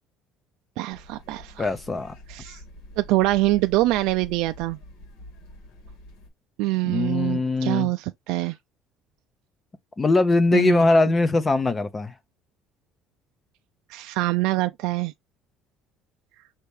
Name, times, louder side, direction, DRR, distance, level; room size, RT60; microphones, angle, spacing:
voice 1, 0.8-1.7 2.3-2.6 3.0-4.8 6.6-8.6 10.5-10.8 13.9-15.1, right 18 dB, 80° right, 0.4 m, -24 dB
sound 1, 0.9-6.3, left 1 dB, 75° left, 2.0 m, -46 dB
voice 2, 1.6-2.1 6.8-7.9 10.0-12.1, left 2 dB, 15° left, 0.5 m, -21 dB
5.7 x 2.7 x 3.2 m
cardioid pair, 155°, 0 cm